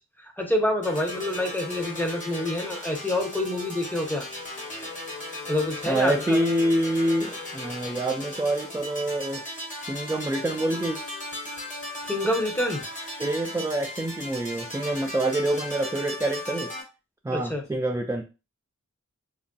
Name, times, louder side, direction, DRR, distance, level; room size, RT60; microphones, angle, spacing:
voice 1, 0.2-4.3 5.5-6.4 12.0-12.8 17.3-17.6, left 1 dB, 5° left, 2 dB, 0.7 m, -27 dB
sound 1, 0.8-16.8, left 1 dB, 25° left, 0.9 m, -37 dB
voice 2, 5.8-9.4 9.9-11.0 13.2-16.7 17.2-18.2, right 1 dB, 10° right, 3 dB, 0.3 m, -26 dB
3.2 x 2.5 x 2.2 m, 0.29 s
wide cardioid pair, 50°, 31 cm